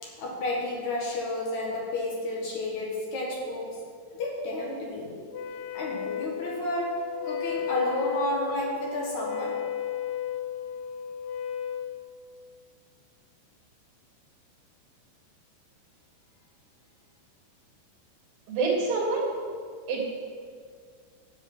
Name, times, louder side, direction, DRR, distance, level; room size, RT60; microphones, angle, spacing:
voice 1, 0.0-3.7 4.2-5.2 5.7-7.0 7.2-9.5, left 1 dB, 55° left, -3 dB, 2.3 m, -31 dB
Wind instrument woodwind instrument, 5.3-11.9, left 9 dB, 85° left, 2.2 m, -34 dB
voice 2, 18.5-19.3 19.9-20.0, right 4 dB, 90° right, -3 dB, 5.3 m, -26 dB
13.5 x 7.5 x 6.2 m, 2.1 s
omnidirectional pair, 5.4 m